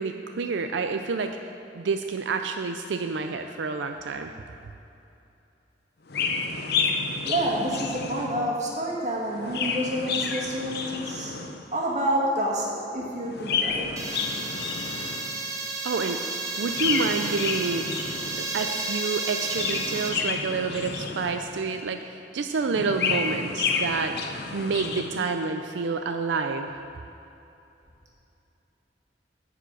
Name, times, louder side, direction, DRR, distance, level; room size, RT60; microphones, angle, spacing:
voice 1, 0.0-1.4 1.7-4.3 15.8-16.2 16.6-17.9 18.4-24.2 24.5-26.7, right 4 dB, 90° right, 6 dB, 0.5 m, -28 dB
Chirp tweet, 6.1-8.5 9.2-11.7 13.2-15.4 16.6-18.5 19.3-21.6 22.7-25.2, left 5 dB, 65° left, 0.7 m, -30 dB
voice 2, 7.3-11.3 11.7-13.9, right 1 dB, 40° right, -3 dB, 1.9 m, -28 dB
sound 1, 14.0-20.1, right 3 dB, 20° right, 1.3 m, -32 dB
11.0 x 5.0 x 8.0 m, 2.8 s
head